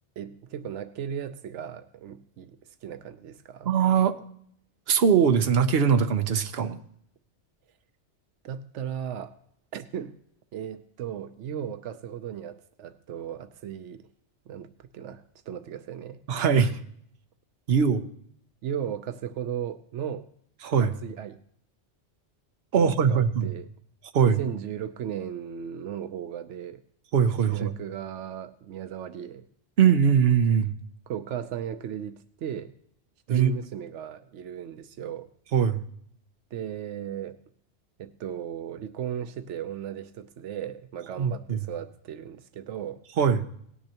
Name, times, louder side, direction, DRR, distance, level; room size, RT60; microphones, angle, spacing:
voice 1, 0.2-3.7 8.4-9.4 9.7-10.2 10.5-14.1 14.5-16.2 18.6-20.3 20.8-21.4 22.7-23.7 24.2-26.8 27.5-29.5 31.1-32.7 33.3-35.3 36.5-37.4 38.0-43.0, right 9 dB, 85° right, 10 dB, 1.0 m, -36 dB
voice 2, 3.6-4.2 4.9-6.8 16.3-16.8 17.7-18.0 20.6-21.0 22.7-23.5 24.1-24.4 27.1-27.7 29.8-30.7 33.3-33.5 35.5-35.8 41.2-41.6 43.2-43.4, right 7 dB, 60° right, 8 dB, 1.0 m, -21 dB
18.0 x 9.7 x 2.9 m, 0.66 s
omnidirectional pair, 1.2 m